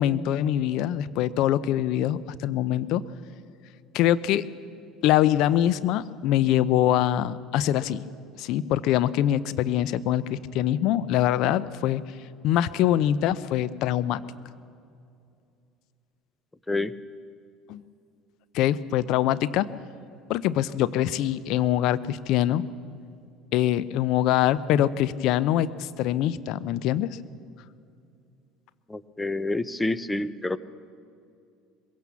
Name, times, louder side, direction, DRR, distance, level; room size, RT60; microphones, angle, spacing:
voice 1, 0.0-3.0 3.9-4.5 5.0-8.0 8.4-12.0 12.4-14.2 17.7-17.8 18.5-19.7 20.3-22.6 23.5-27.1, left 12 dB, 65° left, 16 dB, 0.7 m, -24 dB
voice 2, 28.9-30.6, left 2 dB, 10° left, 15 dB, 0.8 m, -28 dB
22.0 x 16.5 x 7.1 m, 2.5 s
hypercardioid pair, 75°, 0 cm